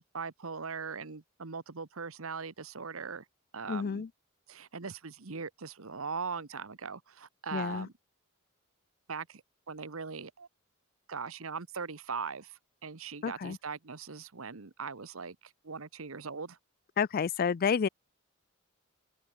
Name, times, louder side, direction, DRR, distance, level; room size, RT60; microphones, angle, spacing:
voice 1, 0.0-3.2 3.5-4.0 4.5-7.9 9.1-10.5 11.1-16.6, right 5 dB, 75° right, 1.2 m, -40 dB
voice 2, 3.7-4.1 7.5-7.9 13.2-13.6 17.0-17.9, left 6 dB, 45° left, 0.4 m, -30 dB
open air
head